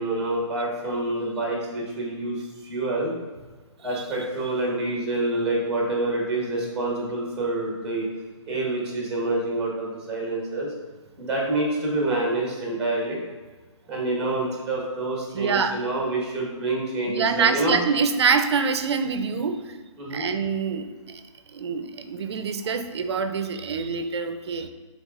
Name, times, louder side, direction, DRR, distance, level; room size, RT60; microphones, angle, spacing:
voice 1, 0.0-3.1 3.8-8.1 8.4-10.7 11.2-13.2 13.9-17.7 20.0-20.2, right 2 dB, 5° right, -3 dB, 1.0 m, -27 dB
voice 2, 15.3-15.8 17.0-19.8 20.1-21.2 21.5-24.7, right 5 dB, 55° right, 9 dB, 0.5 m, -25 dB
5.5 x 3.4 x 2.4 m, 1.4 s
hypercardioid pair, 155°, 16 cm